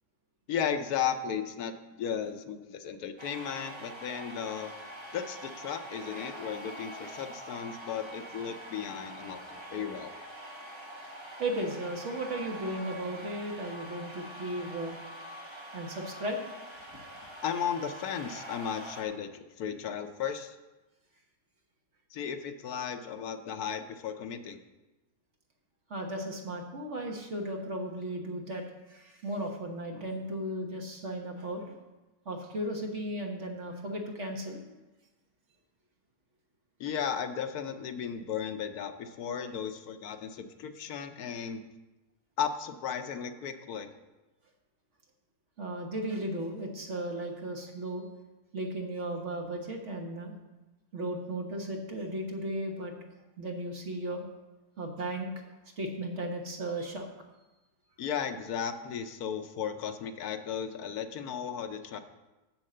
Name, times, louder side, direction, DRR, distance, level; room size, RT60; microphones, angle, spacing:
voice 1, 0.5-4.7 5.1-10.1 17.4-20.6 22.1-24.6 36.8-41.6 42.4-43.9 58.0-62.0, left 8 dB, 75° left, 8 dB, 1.2 m, -35 dB
sound 1, 3.2-19.0, right 1 dB, 20° right, 1.2 m, -45 dB
voice 2, 11.4-15.0 15.7-16.4 25.9-28.6 28.9-31.7 32.2-34.6 45.6-48.0 48.5-50.3 50.9-52.9 53.4-54.2 54.8-55.3 55.8-57.1, right 1 dB, 50° right, 2 dB, 1.5 m, -35 dB
7.5 x 6.5 x 7.7 m, 1.1 s
omnidirectional pair, 1.6 m